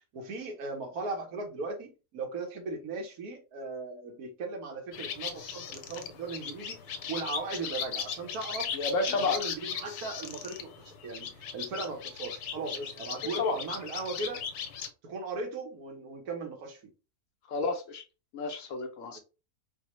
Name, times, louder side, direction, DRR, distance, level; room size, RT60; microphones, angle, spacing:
voice 1, 0.1-8.7 9.1-14.4 15.0-16.9, right 3 dB, 75° right, 1.4 m, -38 dB
sound 1, 4.9-14.9, left 7 dB, 85° left, 1.1 m, -38 dB
voice 2, 8.7-9.4 13.4-13.6 17.5-18.0 18.3-19.2, left 3 dB, 65° left, 0.8 m, -30 dB
4.6 x 2.0 x 3.0 m
omnidirectional pair, 1.6 m